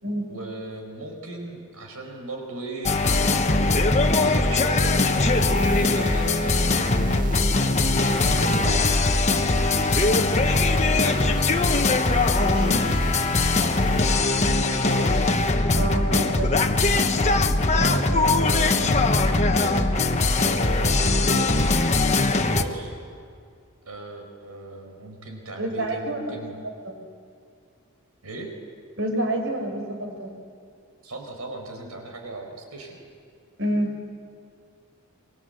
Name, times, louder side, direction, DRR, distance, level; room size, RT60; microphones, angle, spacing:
voice 1, 0.3-4.9 5.6-7.5 8.2-8.8 9.3-11.5 14.6-15.8 16.2-16.3 17.7-19.9 20.3-21.8 22.0-22.9 23.8-26.5 28.2-28.5 31.0-33.0, right 2 dB, 85° right, 3 dB, 4.9 m, -36 dB
sound 1, 2.8-22.6, left 2 dB, 30° left, 1.2 m, -21 dB
sound 2, 4.9-14.2, right 3 dB, 35° right, 1.8 m, -38 dB
voice 2, 12.4-12.9 15.7-16.5 25.6-26.4 26.8-26.9 29.0-30.3 33.6-33.9, right 1 dB, 60° right, 3 dB, 4.8 m, -28 dB
28.5 x 24.5 x 8.0 m, 2.4 s
head